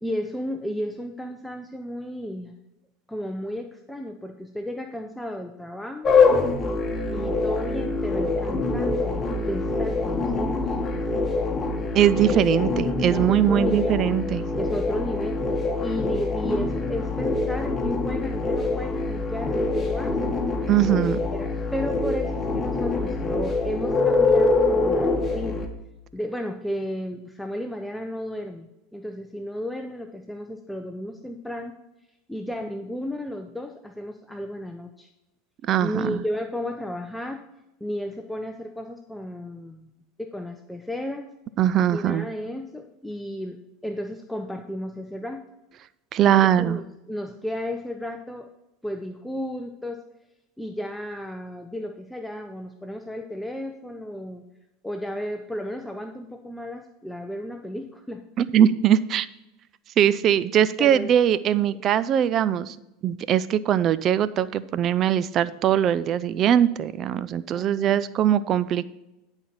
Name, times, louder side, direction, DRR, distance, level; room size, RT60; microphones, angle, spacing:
voice 1, 0.0-2.6 3.1-6.1 7.1-10.7 13.1-13.9 14.6-20.4 21.3-25.6 26.1-31.8 32.3-35.1 35.8-37.4 37.8-39.9 40.2-41.3 41.9-45.5 46.3-48.5 48.8-50.0 50.6-54.4 54.8-58.2 60.8-61.1 61.4-61.8 67.5-68.1, equal, 5° left, 5 dB, 0.6 m, -33 dB
sound 1, 6.0-25.7, left 3 dB, 20° left, 1.4 m, -24 dB
voice 2, 11.9-14.4 20.7-21.2 35.7-36.2 41.6-42.3 46.1-46.8 58.4-59.3 60.0-62.8 63.0-68.8, right 10 dB, 45° right, 17 dB, 0.4 m, -21 dB
10.5 x 4.4 x 5.6 m, 0.92 s
hypercardioid pair, 95°, 0 cm